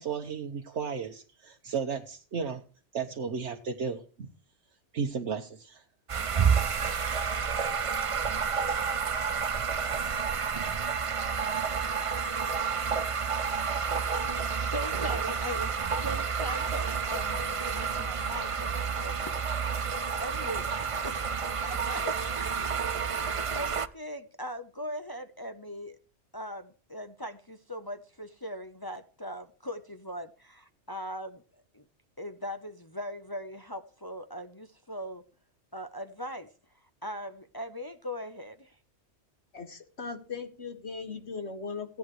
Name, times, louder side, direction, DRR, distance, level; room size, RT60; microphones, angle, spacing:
voice 1, 0.0-2.6 2.9-4.3 4.9-5.8, right 6 dB, 80° right, 1.3 m, -34 dB
sound 1, 6.1-23.9, right 6 dB, 40° right, 0.5 m, -30 dB
voice 2, 14.6-19.4 20.2-22.3 22.6-26.0 26.3-31.4 31.7-31.8 32.2-35.2 35.7-36.5 37.0-38.7, equal, 20° left, 0.7 m, -40 dB
voice 3, 39.5-42.0, left 5 dB, 65° left, 2.2 m, -38 dB
16.0 x 10.5 x 3.1 m
omnidirectional pair, 1.2 m